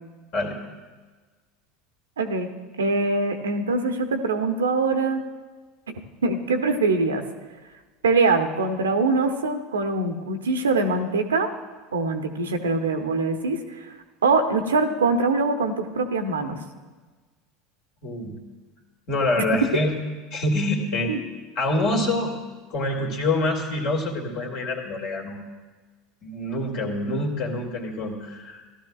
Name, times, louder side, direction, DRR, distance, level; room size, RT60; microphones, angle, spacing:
voice 1, 2.2-2.5 2.8-5.2 6.2-7.2 8.0-11.5 11.9-13.9 14.2-16.6 19.6-19.7 21.1-21.2, right 3 dB, 75° right, 6 dB, 0.8 m, -23 dB
voice 2, 18.0-18.4 19.1-20.0 20.3-21.1 21.6-22.3 22.7-25.4 26.2-28.6, left 2 dB, 50° left, 2 dB, 2.1 m, -26 dB
16.5 x 12.0 x 2.4 m, 1.3 s
figure-of-eight pair, 75°, 0 cm